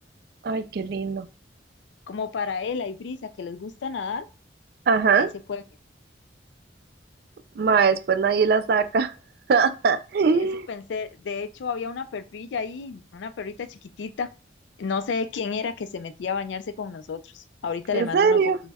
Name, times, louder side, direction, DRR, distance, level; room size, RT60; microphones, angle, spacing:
voice 1, 0.4-1.3 4.9-5.3 7.6-9.1 9.5-10.7 17.9-18.6, right 5 dB, 55° right, 10 dB, 0.3 m, -21 dB
voice 2, 2.1-4.3 5.2-5.6 10.7-14.3 14.8-18.4, left 5 dB, 75° left, 11 dB, 0.4 m, -31 dB
6.0 x 2.1 x 2.3 m, 0.33 s
head